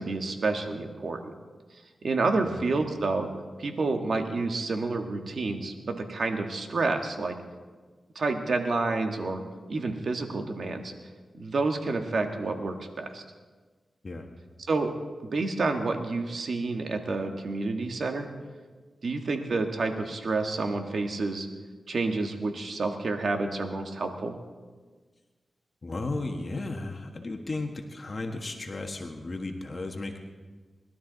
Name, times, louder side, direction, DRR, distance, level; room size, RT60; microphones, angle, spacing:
voice 1, 0.0-1.3 2.0-3.3 3.6-7.4 8.1-9.4 9.7-10.9 11.3-13.2 14.7-14.9 15.3-18.3 19.0-21.5 21.9-24.3, right 3 dB, 70° right, 4 dB, 1.6 m, -29 dB
voice 2, 25.8-30.2, left 2 dB, 50° left, 3 dB, 1.5 m, -34 dB
21.5 x 12.5 x 4.0 m, 1.4 s
cardioid pair, 50°, 0 cm